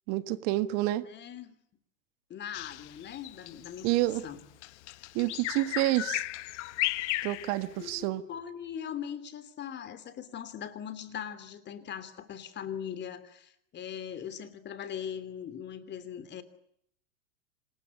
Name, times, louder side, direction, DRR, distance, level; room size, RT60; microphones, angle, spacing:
voice 1, 0.1-1.0 3.8-4.2 5.1-6.2 7.2-8.2, right 17 dB, 50° right, 13 dB, 1.6 m, -28 dB
voice 2, 1.0-1.6 2.3-3.9 4.2-4.4 7.8-16.4, left 8 dB, 25° left, 12 dB, 3.1 m, -40 dB
Bird vocalization bird call bird song, 2.5-8.0, left 18 dB, 60° left, 1.1 m, -35 dB
26.5 x 20.5 x 9.7 m, 0.73 s
hypercardioid pair, 125°, 38 cm